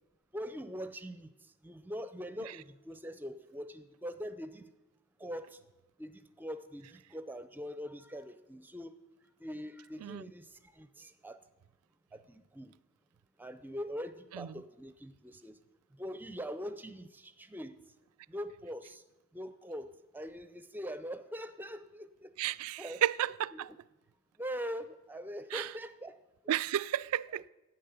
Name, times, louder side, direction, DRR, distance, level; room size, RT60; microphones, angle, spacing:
voice 1, 0.3-1.3 1.6-4.7 5.2-5.6 6.0-8.9 9.4-11.4 12.1-12.7 13.4-15.6 15.9-17.8 18.3-19.0 19.3-22.3 22.8-23.0 23.5-23.8 24.4-26.2 26.4-26.6 27.3-27.5, equal, 10° right, 0.5 m, -42 dB
voice 2, 22.4-23.7 25.5-25.7 26.5-27.4, right 11 dB, 80° right, 0.3 m, -32 dB
10.0 x 8.5 x 7.0 m
head